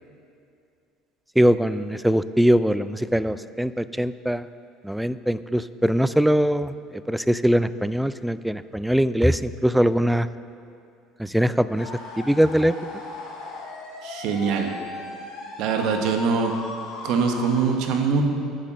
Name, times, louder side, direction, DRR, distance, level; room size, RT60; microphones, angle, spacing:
voice 1, 1.4-4.5 4.8-10.3 11.2-11.9 12.2-12.8, equal, 5° right, 14 dB, 0.3 m, -22 dB
sound 1, 11.7-17.6, left 2 dB, 70° left, 2.6 m, -37 dB
voice 2, 14.0-14.7 15.6-16.5 17.0-18.2, right 5 dB, 70° right, 4 dB, 1.3 m, -23 dB
9.4 x 7.3 x 6.6 m, 2.5 s
supercardioid pair, 110°, 0 cm